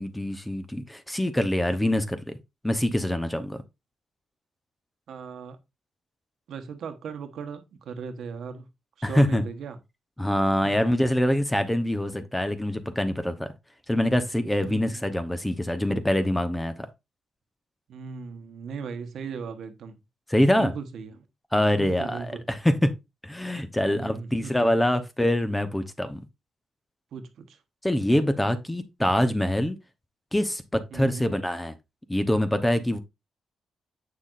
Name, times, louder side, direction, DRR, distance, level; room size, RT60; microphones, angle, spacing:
voice 1, 0.0-2.3 2.6-3.6 9.0-9.4 10.2-13.5 13.9-16.9 20.3-20.7 21.5-22.9 23.2-26.2 27.8-29.8 30.3-31.7 32.1-33.0, left 1 dB, 10° left, 0.9 m, -24 dB
voice 2, 5.1-5.6 6.5-8.7 9.0-9.8 14.6-15.0 17.9-20.0 20.5-21.2 21.7-22.4 23.9-24.5 27.1-27.6 30.9-31.3, right 6 dB, 75° right, 1.1 m, -37 dB
7.5 x 6.2 x 2.5 m
cardioid pair, 80°, 0 cm